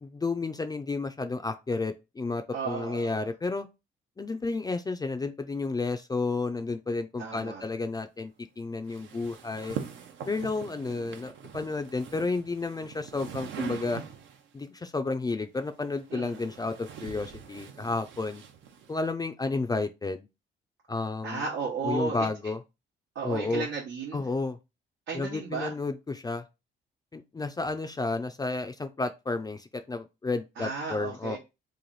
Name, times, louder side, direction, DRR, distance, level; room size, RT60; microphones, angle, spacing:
voice 1, 0.0-3.7 4.2-9.8 10.3-14.0 14.5-18.4 18.9-20.3 20.9-21.4 21.8-22.6 23.2-23.7 24.1-24.6 25.1-26.4 27.1-31.4, left 3 dB, 20° left, 0.4 m, -31 dB
voice 2, 2.5-3.3 7.2-7.6 10.9-11.2 16.1-16.4 21.2-22.3 23.1-24.3 25.1-25.7 30.6-31.4, right 4 dB, 90° right, 1.1 m, -34 dB
sound 1, 8.9-14.5 15.6-19.1, right 8 dB, 70° right, 0.7 m, -43 dB
3.2 x 2.5 x 3.9 m
cardioid pair, 90°, 20 cm